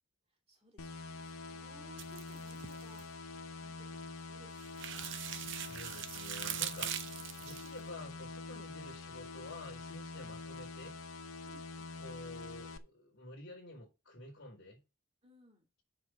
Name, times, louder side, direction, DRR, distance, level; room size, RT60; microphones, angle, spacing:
voice 1, 0.3-3.3 3.6-5.1 10.2-10.3 11.4-12.0 15.2-15.7, right 1 dB, 30° right, 2.6 m, -62 dB
sound 1, 0.8-12.8, left 3 dB, 80° left, 0.7 m, -46 dB
sound 2, 2.0-3.0 4.6-7.7, right 10 dB, 60° right, 0.7 m, -41 dB
voice 2, 5.5-7.0 7.4-11.0 12.0-14.8, left 2 dB, 55° left, 4.1 m, -50 dB
7.6 x 4.7 x 6.4 m
head